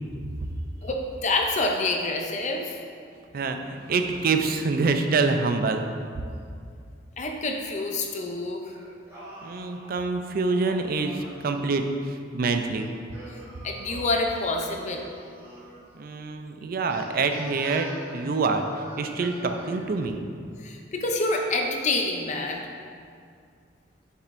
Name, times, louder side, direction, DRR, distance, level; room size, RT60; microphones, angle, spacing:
voice 1, 0.8-2.8 7.2-8.8 13.3-13.4 13.6-15.1 20.6-22.6, left 2 dB, 40° left, 2 dB, 0.5 m, -27 dB
voice 2, 3.3-5.8 9.4-12.9 15.9-20.2, right 4 dB, 50° right, 6 dB, 0.4 m, -26 dB
Singing, 8.7-11.5 12.6-15.8 16.8-19.9, right 1 dB, 15° right, 1.5 m, -45 dB
7.1 x 6.6 x 2.5 m, 2.3 s
head